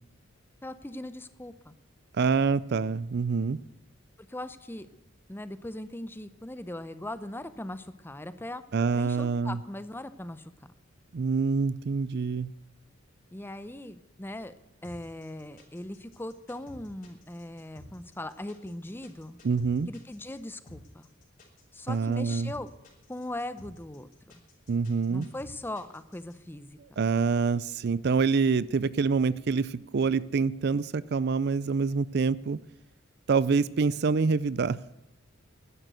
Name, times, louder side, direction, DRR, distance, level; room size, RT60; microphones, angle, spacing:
voice 1, 0.6-1.7 4.3-4.9 5.3-8.6 8.9-10.4 13.3-14.5 14.8-19.4 19.9-21.1 21.7-22.7 23.1-24.4 25.1-26.8, left 1 dB, 10° left, 13 dB, 0.7 m, -39 dB
voice 2, 2.1-3.6 8.7-9.6 11.1-12.5 19.4-19.9 21.9-22.5 24.7-25.3 27.0-32.6 33.3-34.8, right 5 dB, 55° right, 19 dB, 0.4 m, -26 dB
sound 1, 14.8-26.3, left 1 dB, 40° left, 4.5 m, -52 dB
12.0 x 11.0 x 8.1 m, 0.90 s
head